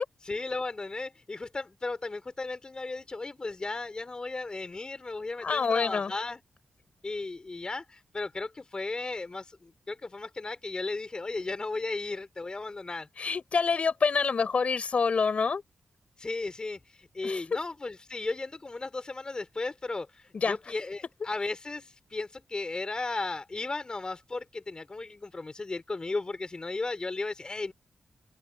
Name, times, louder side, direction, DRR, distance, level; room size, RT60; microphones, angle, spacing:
voice 1, 0.2-6.4 7.0-13.1 16.2-27.7, left 3 dB, 35° left, 3.4 m, -35 dB
voice 2, 5.4-6.1 13.2-15.6 17.2-17.4 20.3-20.6, left 5 dB, 55° left, 4.9 m, -26 dB
cardioid pair, 80°, 3 cm